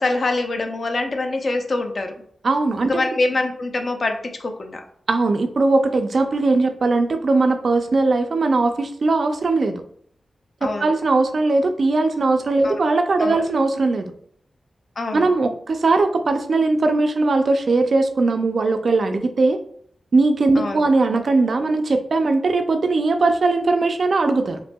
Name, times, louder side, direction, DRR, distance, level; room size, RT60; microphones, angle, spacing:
voice 1, 0.0-2.1 2.8-4.8 10.6-10.9 12.6-12.8 13.2-13.4 15.0-15.3 20.5-20.9, left 2 dB, 45° left, 4 dB, 0.5 m, -24 dB
voice 2, 2.4-3.0 5.1-9.8 10.6-14.1 15.1-19.6 20.1-24.6, right 3 dB, 55° right, 6 dB, 0.4 m, -19 dB
5.4 x 2.6 x 2.2 m, 0.62 s
wide cardioid pair, 155°, 0 cm